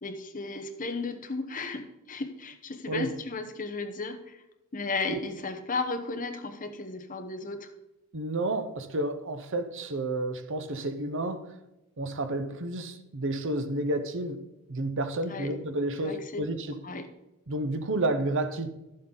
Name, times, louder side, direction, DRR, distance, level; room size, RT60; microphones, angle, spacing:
voice 1, 0.0-4.4 4.7-7.7 15.3-15.5 16.0-16.4 16.8-17.1, left 3 dB, 40° left, 1.0 m, -34 dB
voice 2, 8.1-11.5 12.0-14.4 14.7-16.8 17.5-18.7, right 2 dB, 60° right, 0.8 m, -31 dB
12.0 x 7.6 x 3.9 m
head